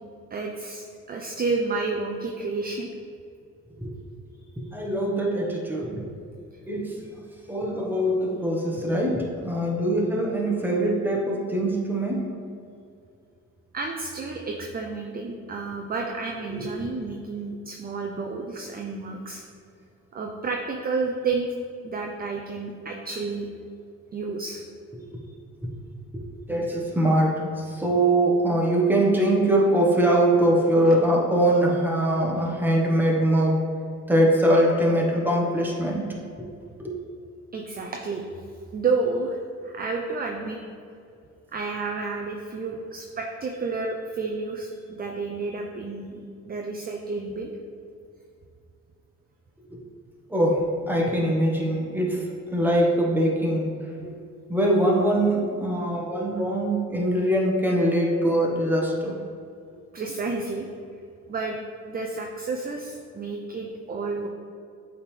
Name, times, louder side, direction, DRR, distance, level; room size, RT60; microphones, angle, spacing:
voice 1, 0.3-2.9 4.6-4.7 13.7-19.4 20.1-21.5 21.8-23.5 24.1-24.6 37.5-38.2 38.7-39.4 39.6-40.6 41.5-47.5 59.9-60.7 61.3-61.6 61.9-64.3, right 3 dB, 30° right, 2 dB, 0.5 m, -30 dB
voice 2, 4.6-6.0 6.7-7.1 7.5-12.2 16.5-16.8 26.1-26.2 26.5-33.6 34.1-36.1 36.8-37.0 49.7-49.8 50.3-52.2 52.5-53.7 54.0-54.2 54.5-59.1, right 1 dB, 5° right, -2 dB, 1.1 m, -22 dB
8.0 x 3.6 x 3.3 m, 2.4 s
cardioid pair, 90°, 30 cm